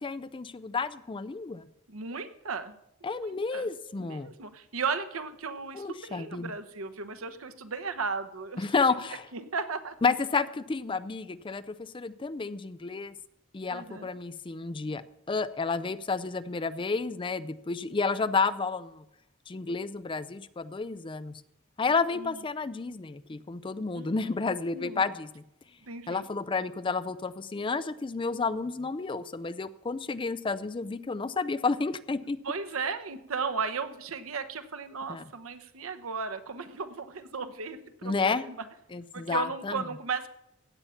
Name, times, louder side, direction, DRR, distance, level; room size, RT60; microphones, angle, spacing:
voice 1, 0.0-1.7 3.0-4.3 5.7-6.5 8.6-9.2 10.0-13.1 13.5-19.0 19.5-21.4 21.8-25.4 26.1-32.4 35.1-35.2 38.0-38.4 38.9-39.8, left 4 dB, 25° left, 14 dB, 0.4 m, -31 dB
voice 2, 1.9-2.7 3.1-3.7 4.0-8.8 9.3-9.9 13.7-14.1 22.2-22.4 23.9-24.1 24.7-25.1 25.8-26.3 32.4-38.6 39.1-40.3, right 5 dB, 85° right, 11 dB, 1.0 m, -35 dB
16.0 x 8.6 x 5.7 m, 0.83 s
head